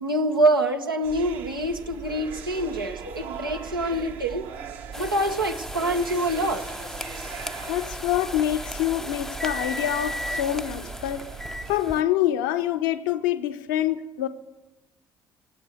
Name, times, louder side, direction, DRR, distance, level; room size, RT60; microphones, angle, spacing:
voice 1, 0.0-4.5 5.0-6.6, right 1 dB, 85° right, 0.9 m, -25 dB
sound 1, 1.0-11.8, right 6 dB, 60° right, 1.2 m, -39 dB
sound 2, 4.9-12.0, left 1 dB, 5° left, 0.5 m, -35 dB
voice 2, 7.7-11.3 11.7-14.3, left 12 dB, 70° left, 0.8 m, -26 dB
18.0 x 8.0 x 9.4 m
figure-of-eight pair, 45°, 11 cm